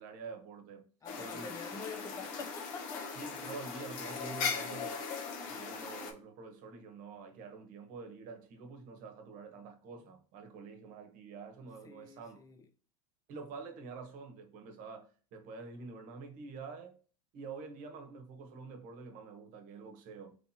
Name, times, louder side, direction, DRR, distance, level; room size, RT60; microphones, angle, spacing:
voice 1, 0.0-0.9 1.2-1.5 3.1-5.1 5.5-12.4 13.3-17.0 17.3-20.4, right 4 dB, 45° right, 1.2 m, -47 dB
voice 2, 1.0-3.1 11.8-12.7, left 4 dB, 20° left, 0.7 m, -46 dB
sound 1, 1.1-6.1, left 5 dB, 45° left, 1.0 m, -39 dB
4.0 x 3.3 x 2.8 m
hypercardioid pair, 110°, 18 cm